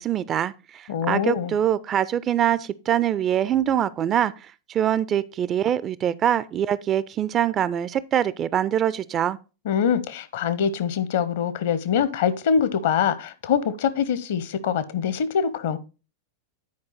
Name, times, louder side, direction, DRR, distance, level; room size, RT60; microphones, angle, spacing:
voice 1, 0.0-4.3 4.7-9.4, right 10 dB, 30° right, 0.4 m, -24 dB
voice 2, 0.9-1.5 9.7-15.8, left 7 dB, 55° left, 0.7 m, -24 dB
9.5 x 4.8 x 4.0 m
figure-of-eight pair, 90°, 0 cm